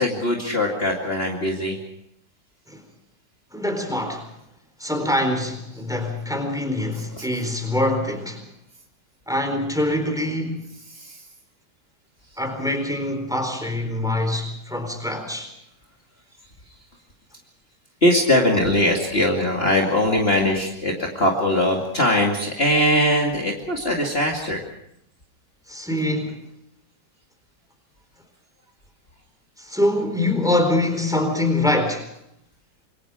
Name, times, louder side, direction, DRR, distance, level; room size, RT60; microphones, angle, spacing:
voice 1, 0.0-1.8 7.1-7.2 10.9-11.2 18.0-24.7, left 1 dB, 35° left, 2.6 m, -21 dB
voice 2, 3.5-4.3 4.8-8.4 9.3-10.7 12.4-15.5 25.7-26.5 29.6-32.1, left 1 dB, ahead, 4.1 m, -24 dB
27.5 x 22.5 x 5.0 m
omnidirectional pair, 1.9 m